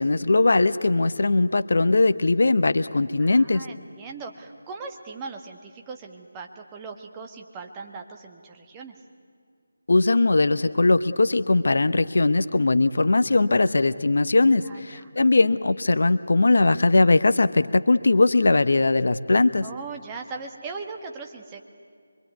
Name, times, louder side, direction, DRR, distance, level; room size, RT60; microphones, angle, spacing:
voice 1, 0.0-3.6 9.9-19.6, left 2 dB, 60° left, 13 dB, 0.8 m, -20 dB
voice 2, 3.2-8.9 14.6-15.1 19.6-21.6, right 4 dB, 15° right, 2 dB, 1.6 m, -39 dB
25.0 x 23.5 x 9.5 m, 2.2 s
figure-of-eight pair, 155°, 0 cm